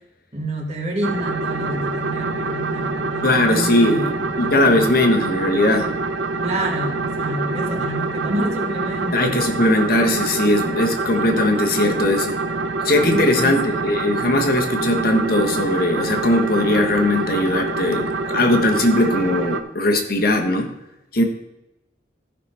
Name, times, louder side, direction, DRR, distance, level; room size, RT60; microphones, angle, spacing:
voice 1, 0.3-4.8 6.4-9.4 13.0-13.7, right 1 dB, 35° right, -1 dB, 1.9 m, -28 dB
sound 1, 1.0-19.6, right 3 dB, 80° right, 0.7 m, -26 dB
voice 2, 3.2-4.1 4.4-5.9 9.1-12.4 12.8-20.7 21.1-21.2, left 1 dB, 55° left, 4 dB, 1.2 m, -19 dB
14.5 x 5.8 x 3.4 m, 0.90 s
head